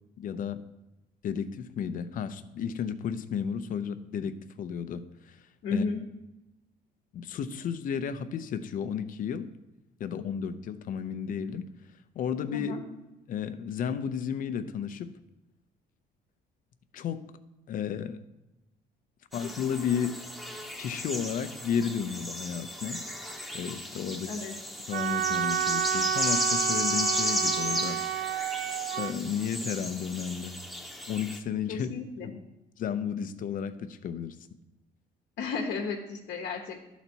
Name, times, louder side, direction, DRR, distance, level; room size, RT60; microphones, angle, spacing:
voice 1, 0.2-0.6 1.2-5.4 5.7-5.8 7.1-9.5 10.0-11.7 12.2-12.7 13.3-15.1 16.9-17.2 17.7-18.2 19.3-20.1 20.8-23.0 23.5-24.4 24.9-28.5 28.9-30.6 31.1-31.9 32.2-32.4 32.8-34.4, left 7 dB, 55° left, 11 dB, 0.6 m, -33 dB
voice 2, 5.6-6.0 12.5-12.8 24.3-24.5 31.7-32.3 35.4-36.7, left 4 dB, 70° left, 1 dB, 1.0 m, -33 dB
sound 1, 19.3-31.4, left 1 dB, ahead, 0.9 m, -34 dB
Wind instrument woodwind instrument, 24.9-29.1, right 11 dB, 70° right, 0.4 m, -30 dB
12.0 x 4.1 x 4.4 m, 1.0 s
cardioid pair, 110°, 17 cm